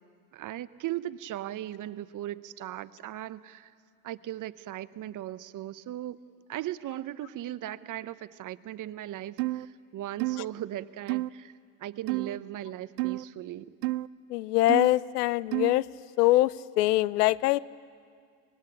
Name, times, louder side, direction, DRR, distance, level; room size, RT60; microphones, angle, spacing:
voice 1, 0.3-3.7 4.0-6.2 6.5-11.5 11.8-13.7, right 13 dB, 40° right, 15 dB, 0.9 m, -38 dB
sound 1, 9.4-9.6 10.2-10.5 11.1-11.3 12.1-12.4 13.0-13.2 13.8-14.1 14.7-15.0 15.5-15.8, right 19 dB, 80° right, 0.7 m, -30 dB
voice 2, 14.3-15.9 16.2-17.6, left 17 dB, 85° left, 20 dB, 0.7 m, -23 dB
24.5 x 20.0 x 8.8 m, 2.1 s
supercardioid pair, 90°, 46 cm